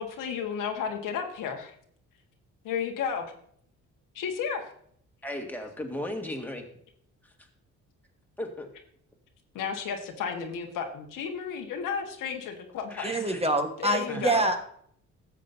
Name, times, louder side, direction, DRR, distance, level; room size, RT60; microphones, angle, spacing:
voice 1, 0.0-1.7 2.6-3.3 4.1-4.7 9.5-13.2 13.8-14.5, left 6 dB, 85° left, 3 dB, 1.5 m, -33 dB
voice 2, 5.2-6.6 8.4-8.7 12.9-13.5 14.1-14.2, left 1 dB, 5° left, 2 dB, 1.8 m, -36 dB
voice 3, 13.0-14.6, right 1 dB, 20° right, 5 dB, 1.3 m, -25 dB
13.5 x 7.5 x 2.7 m, 0.64 s
cardioid pair, 90°, 31 cm